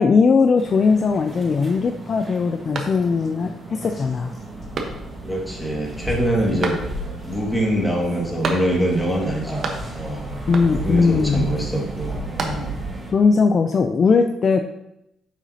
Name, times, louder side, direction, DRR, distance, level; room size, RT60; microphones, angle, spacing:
voice 1, 0.0-4.3 6.5-6.9 10.5-11.5 13.1-14.6, left 5 dB, 40° left, 6 dB, 0.4 m, -19 dB
sound 1, 0.6-13.1, right 1 dB, 20° right, 1.7 m, -37 dB
sound 2, 2.7-3.4 3.8-3.9 4.7-5.4 6.6-7.2 8.4-9.0 9.3-10.1 10.5-11.0 12.0-13.0, right 4 dB, 50° right, 1.0 m, -31 dB
sound 3, 4.2-12.9, right 1 dB, 75° right, 2.7 m, -34 dB
voice 2, 5.2-6.8 7.3-10.2 10.7-12.7, right 1 dB, 5° left, -2 dB, 1.9 m, -24 dB
8.8 x 6.1 x 2.8 m, 0.85 s
cardioid pair, 130°, 0 cm